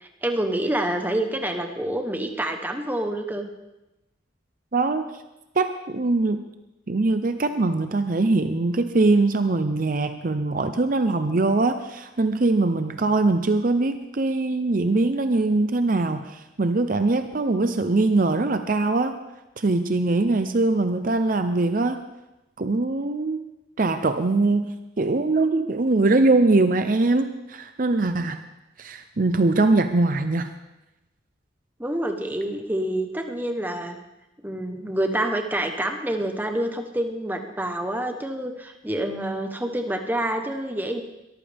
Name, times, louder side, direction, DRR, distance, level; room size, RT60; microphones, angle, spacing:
voice 1, 0.0-3.5 31.8-34.0 34.4-41.0, right 1 dB, 10° right, 5 dB, 1.0 m, -27 dB
voice 2, 4.7-5.2 5.6-6.4 6.9-19.1 19.6-22.0 22.6-23.4 23.8-28.4 28.8-30.5, right 2 dB, 45° right, 9 dB, 0.6 m, -22 dB
22.5 x 14.0 x 3.5 m, 0.99 s
head